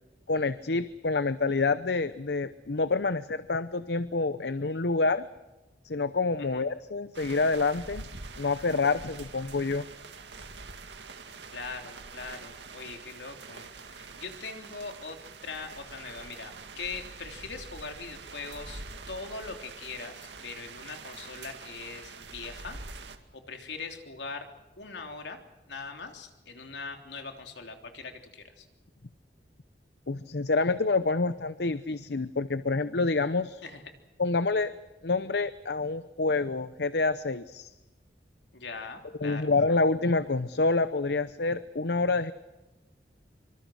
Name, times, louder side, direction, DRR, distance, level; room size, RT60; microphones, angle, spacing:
voice 1, 0.3-5.3 5.8-8.1 8.4-9.9 30.1-33.6 34.2-34.7 35.0-37.7 39.2-42.3, left 3 dB, 70° left, 13 dB, 0.8 m, -27 dB
sound 1, 7.1-23.2, right 4 dB, 90° right, 2.2 m, -45 dB
voice 2, 11.5-18.8 19.1-22.8 23.3-24.4 24.8-25.4 25.7-28.7 33.6-33.8 38.5-39.5, left 4 dB, 85° left, 5 dB, 3.4 m, -41 dB
25.5 x 25.0 x 6.4 m, 1.1 s
head